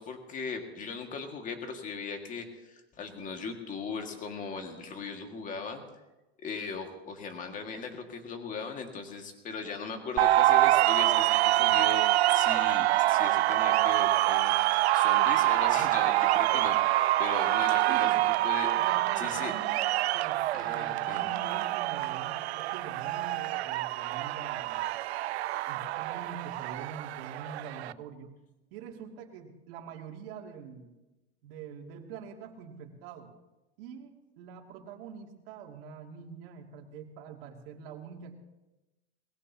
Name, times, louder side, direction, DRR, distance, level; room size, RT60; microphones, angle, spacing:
voice 1, 0.0-5.8 6.4-12.0 12.3-18.7 19.2-19.5 20.5-21.2, left 4 dB, 25° left, 4 dB, 2.0 m, -39 dB
sound 1, 10.2-27.9, right 16 dB, 90° right, 0.5 m, -26 dB
voice 2, 17.9-18.2 18.8-19.8 20.1-24.8 25.7-28.4 28.7-30.9 31.4-33.3 33.8-38.3, right 6 dB, 60° right, 1 dB, 2.7 m, -45 dB
21.0 x 16.5 x 2.9 m, 1.0 s
supercardioid pair, 140°, 32 cm